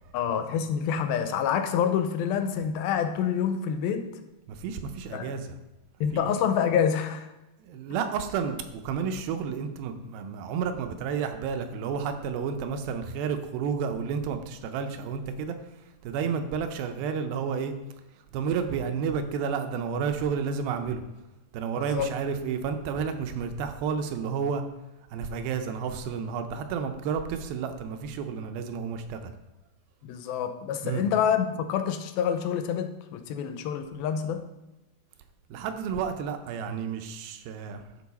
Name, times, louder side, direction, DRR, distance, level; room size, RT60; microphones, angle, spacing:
voice 1, 0.1-4.1 5.1-5.3 6.0-7.3 21.8-22.1 30.0-34.5, left 8 dB, 90° left, 8 dB, 2.5 m, -27 dB
voice 2, 4.5-5.6 6.1-6.3 7.6-15.6 16.0-17.7 18.3-21.0 21.5-24.6 25.1-29.3 30.8-31.1 35.5-37.8, right 6 dB, 85° right, 7 dB, 2.6 m, -31 dB
11.5 x 4.6 x 4.1 m, 0.99 s
omnidirectional pair, 4.2 m